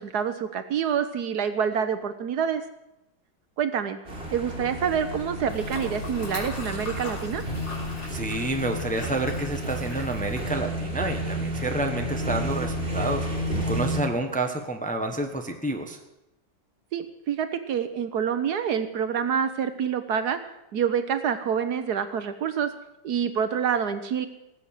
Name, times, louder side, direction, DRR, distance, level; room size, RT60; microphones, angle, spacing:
voice 1, 0.0-2.6 3.6-4.0 4.3-7.4 16.9-20.4 20.7-22.7 23.0-24.3, right 7 dB, 65° right, 10 dB, 1.3 m, -27 dB
sound 1, 4.0-14.0, equal, 30° right, 3.7 m, -31 dB
sound 2, 5.5-10.6, left 2 dB, 85° left, 4.1 m, -39 dB
voice 2, 8.1-13.3 13.7-16.0, right 2 dB, 5° left, 4 dB, 1.0 m, -29 dB
18.5 x 7.9 x 7.3 m, 0.89 s
omnidirectional pair, 2.0 m